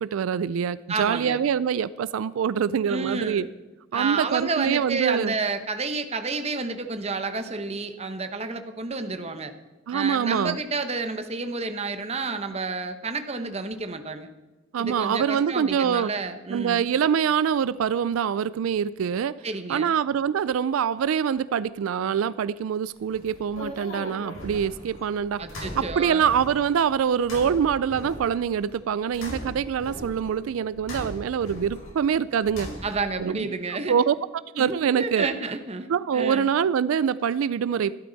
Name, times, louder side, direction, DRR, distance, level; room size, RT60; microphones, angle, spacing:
voice 1, 0.0-3.5 3.9-5.3 9.9-10.6 14.7-16.1 16.5-19.4 19.7-32.7 33.2-33.5 33.9-34.2 34.6-35.3 35.9-38.0, right 7 dB, 90° right, 17 dB, 0.3 m, -25 dB
voice 2, 0.9-1.4 2.9-3.5 3.9-9.5 9.9-14.3 14.8-16.9 19.4-19.9 25.4-26.2 29.3-29.5 32.8-33.9 34.5-35.9 36.1-36.5, right 3 dB, 30° right, 8 dB, 1.0 m, -30 dB
sound 1, 23.0-33.2, left 1 dB, 90° left, 5.1 m, -39 dB
13.0 x 12.0 x 4.0 m, 1.1 s
head